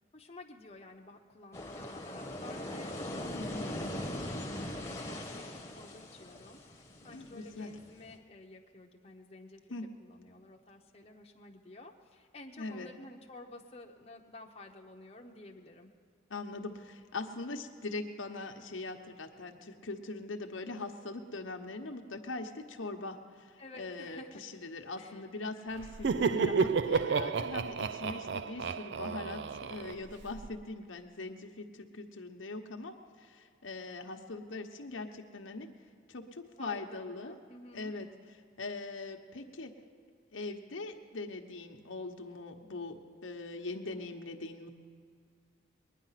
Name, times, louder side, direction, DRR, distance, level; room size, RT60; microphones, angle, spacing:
voice 1, 0.1-4.3 4.7-15.9 23.6-24.4 25.0-25.2 36.6-37.9, left 2 dB, 30° left, 0 dB, 0.9 m, -52 dB
sound 1, 1.5-8.2, left 1 dB, 15° left, 1.1 m, -41 dB
voice 2, 7.0-7.7 9.7-9.8 12.6-12.9 16.3-35.7 36.1-37.4 37.7-38.1 38.6-39.7 40.3-44.7, left 3 dB, 80° left, 4 dB, 1.0 m, -41 dB
Laughter, 25.8-30.5, right 5 dB, 60° right, 0.4 m, -31 dB
21.0 x 10.0 x 5.8 m, 2.2 s
head